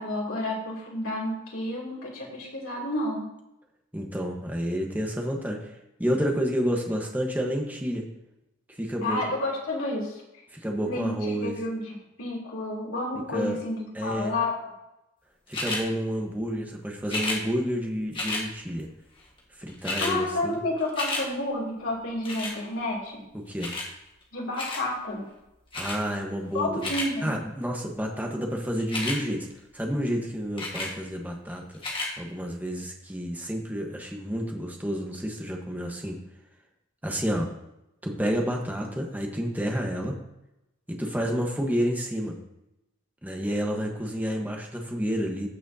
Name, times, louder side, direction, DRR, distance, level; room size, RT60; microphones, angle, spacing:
voice 1, 0.0-3.3 9.0-10.2 10.8-14.7 20.0-23.2 24.3-25.2 26.5-27.3, left 1 dB, 80° left, -3 dB, 2.9 m, -30 dB
voice 2, 3.9-8.1 8.7-9.2 10.5-11.5 13.3-13.6 13.9-14.3 15.5-18.9 19.6-20.6 23.5-23.7 25.7-26.9 27.2-29.5 29.7-31.6 32.2-36.2 37.0-37.5 38.0-40.2 40.9-42.4 43.2-45.5, equal, 10° right, 1 dB, 1.2 m, -30 dB
sound 1, 15.5-15.8 17.0-17.4 18.1-18.5 19.4-19.5 19.7-20.2 20.5-21.3 22.3-22.6 23.6-23.9 24.6-24.9 25.7-26.0 26.6-27.1 28.8-29.2 30.6-30.9 31.7-32.1 32.8-32.9, left 2 dB, 25° left, 1.6 m, -31 dB
15.5 x 6.1 x 2.8 m, 0.88 s
head